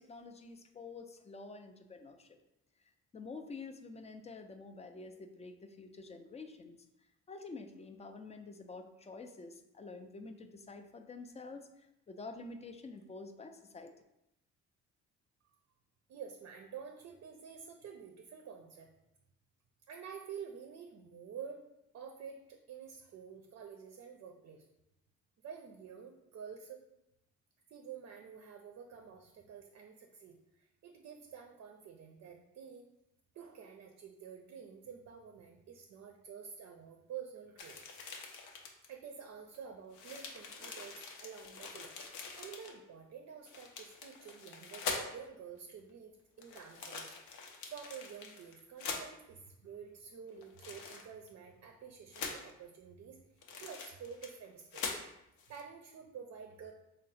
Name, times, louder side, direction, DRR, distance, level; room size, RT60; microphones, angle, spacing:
voice 1, 0.0-2.4 3.1-6.8 7.3-13.9, left 3 dB, 20° left, 7 dB, 0.3 m, -48 dB
voice 2, 16.1-18.9 19.9-21.6 21.9-24.7 25.4-26.8 27.7-32.8 33.3-37.8 38.9-47.1 47.7-55.0 55.5-56.7, right 7 dB, 55° right, 4 dB, 0.5 m, -49 dB
sound 1, 37.6-38.9 39.5-39.6 39.9-42.7 43.5-45.3 46.4-49.0 50.4-51.3 52.1-52.5 53.4-54.5 54.7-55.0 55.4-55.6, left 4 dB, 80° left, 0.6 m, -44 dB
3.7 x 2.0 x 4.0 m, 0.86 s
cardioid pair, 90°, 30 cm